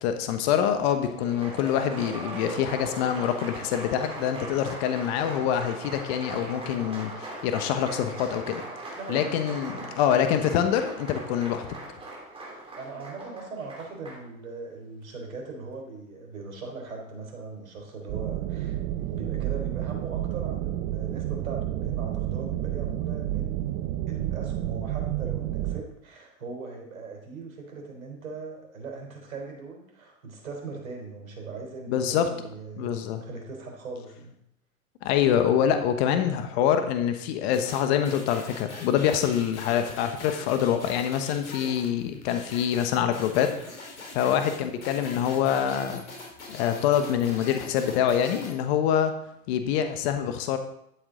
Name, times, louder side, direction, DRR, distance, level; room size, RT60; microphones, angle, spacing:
voice 1, 0.0-8.6 9.1-11.7 31.9-32.3 32.8-33.2 35.0-43.5 44.1-46.0 46.5-49.1 49.5-50.6, left 9 dB, 50° left, 7 dB, 1.3 m, -25 dB
Applause, 1.0-14.3, right 2 dB, 15° right, 2.9 m, -39 dB
voice 2, 8.9-9.9 12.8-23.7 24.1-34.3 44.2-44.3, right 4 dB, 75° right, 1 dB, 3.8 m, -40 dB
sound 1, 18.1-25.8, right 13 dB, 40° right, 0.8 m, -30 dB
sound 2, 37.5-48.6, left 3 dB, 80° left, 3.4 m, -42 dB
12.5 x 7.9 x 3.8 m, 0.76 s
hypercardioid pair, 105°, 42 cm